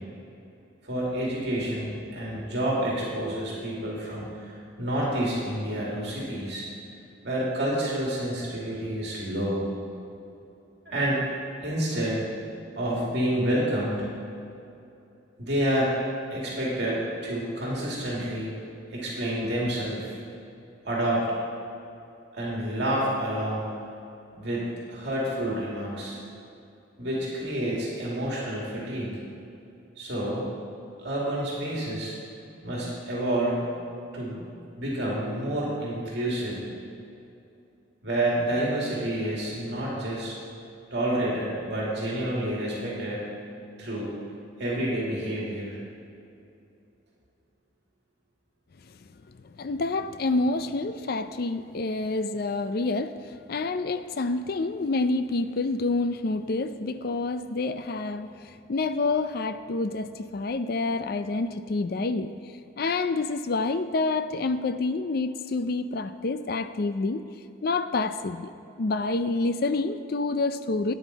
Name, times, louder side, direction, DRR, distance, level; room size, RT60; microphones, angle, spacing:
voice 1, 0.8-6.6 7.2-9.6 10.9-11.2 11.6-12.3 12.8-14.1 15.4-16.0 16.3-18.5 18.9-20.2 20.9-21.3 22.3-23.8 24.4-26.2 27.0-29.2 30.0-30.5 31.0-32.1 32.6-33.7 34.1-34.5 34.8-36.7 38.0-40.4 40.9-43.3 43.8-44.1 44.6-45.8, right 1 dB, 60° right, -5 dB, 2.4 m, -29 dB
voice 2, 49.4-62.4 62.8-67.2 67.6-68.5 68.8-70.9, left 3 dB, 50° left, 11 dB, 0.4 m, -28 dB
12.5 x 9.4 x 4.0 m, 2.7 s
head